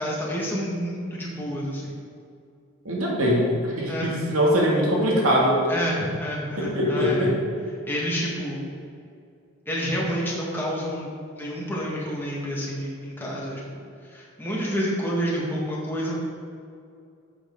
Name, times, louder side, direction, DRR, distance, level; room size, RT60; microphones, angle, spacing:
voice 1, 0.0-2.0 3.9-4.1 5.7-7.3 7.9-8.6 9.7-13.8 14.1-16.1, equal, 10° left, -5 dB, 1.8 m, -29 dB
voice 2, 2.8-5.6 6.6-7.3, equal, 80° right, -3 dB, 2.4 m, -22 dB
9.6 x 8.1 x 3.8 m, 2.4 s
head